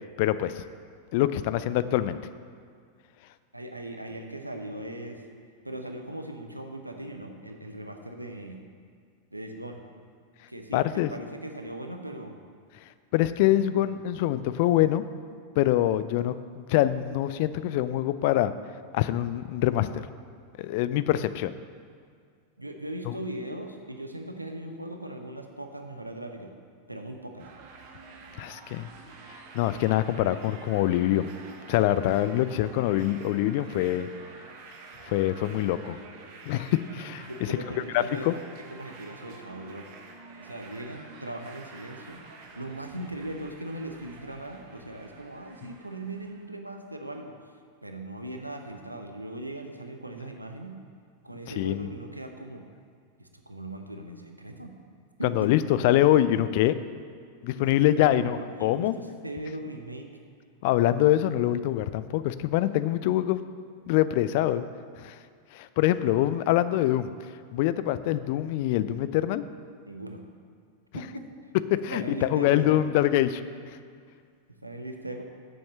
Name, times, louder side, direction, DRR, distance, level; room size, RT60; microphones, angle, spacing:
voice 1, 0.2-0.6 1.1-2.2 10.7-11.1 13.1-15.0 15.6-16.3 16.7-18.5 18.9-20.1 20.6-21.5 23.1-23.2 28.4-28.9 29.5-31.3 31.7-34.1 35.1-36.0 36.5-37.3 37.9-38.4 51.6-51.9 55.2-56.8 57.4-59.0 60.6-63.4 63.9-64.6 65.0-65.1 65.5-67.1 67.5-69.4 71.8-73.4, left 13 dB, 50° left, 13 dB, 0.4 m, -24 dB
voice 2, 3.5-5.2 5.6-8.6 9.3-9.8 10.5-12.4 13.7-13.9 22.6-26.5 26.9-27.5 37.3-39.9 40.4-42.2 42.5-47.5 47.8-50.8 51.2-52.6 53.2-54.7 55.2-55.5 57.6-60.1 69.9-70.2 70.9-71.5 71.9-72.8 74.5-75.2, right 1 dB, 85° right, 4 dB, 0.8 m, -39 dB
sound 1, 27.4-46.5, right 4 dB, 45° right, 1.1 m, -48 dB
7.1 x 6.4 x 7.5 m, 2.1 s
figure-of-eight pair, 90°, 0 cm